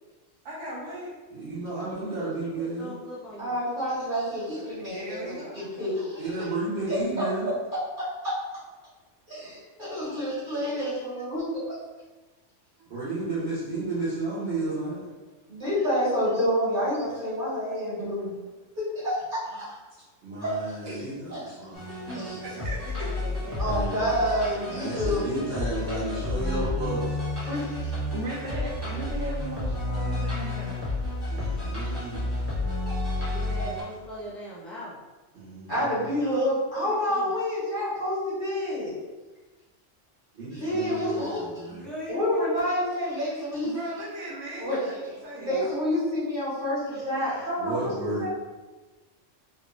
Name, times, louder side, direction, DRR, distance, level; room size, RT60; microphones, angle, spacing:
voice 1, 0.4-1.1 4.5-5.7 12.8-12.9 17.7-18.0 20.8-21.1 22.4-23.6 28.0-30.8 43.6-44.9 45.2-45.8, right 1 dB, 80° right, -5 dB, 1.2 m, -38 dB
voice 2, 1.3-2.9 6.2-7.5 12.9-15.1 20.2-21.8 23.6-24.1 24.6-27.2 31.3-32.2 35.3-36.1 40.3-41.9 47.6-48.3, right 2 dB, 60° right, -13 dB, 1.3 m, -32 dB
voice 3, 2.1-3.6 20.8-20.9 22.1-22.2 22.8-24.3 33.3-34.9 36.8-37.3 41.7-42.4, equal, ahead, -9 dB, 0.8 m, -41 dB
voice 4, 3.4-6.2 7.2-7.3 8.0-8.3 9.3-11.6 15.5-18.3 18.8-19.7 20.4-20.5 22.1-22.4 23.6-25.4 27.4-27.9 35.7-38.9 40.5-41.4 42.1-43.7 44.6-45.0 45.4-48.3, equal, 45° right, -10 dB, 1.5 m, -28 dB
sound 1, 21.7-33.8, left 2 dB, 20° right, 1.2 m, -31 dB
3.0 x 2.5 x 3.0 m, 1.2 s
omnidirectional pair, 1.3 m